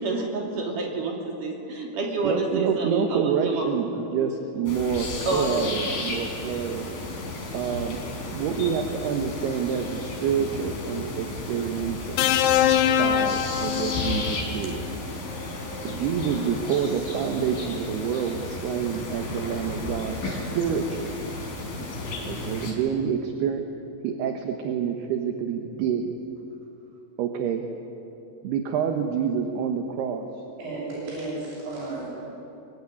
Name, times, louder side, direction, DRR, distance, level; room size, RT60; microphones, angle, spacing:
voice 1, 0.0-3.7 4.2-4.3 5.3-5.7, right 3 dB, 45° right, 0 dB, 4.1 m, -28 dB
voice 2, 2.2-6.9 7.5-8.0 8.3-12.2 12.9-14.8 15.8-21.3 22.3-23.6 24.0-26.2 27.2-27.6 28.4-30.4, right 7 dB, 65° right, 4 dB, 3.0 m, -28 dB
sound 1, 4.7-22.7, left 2 dB, 50° left, 5.8 m, -34 dB
sound 2, 12.2-14.4 15.8-16.0, left 10 dB, 75° left, 2.9 m, -23 dB
voice 3, 30.6-32.1, right 2 dB, 90° right, -7 dB, 9.5 m, -33 dB
23.5 x 23.0 x 9.9 m, 2.8 s
omnidirectional pair, 5.6 m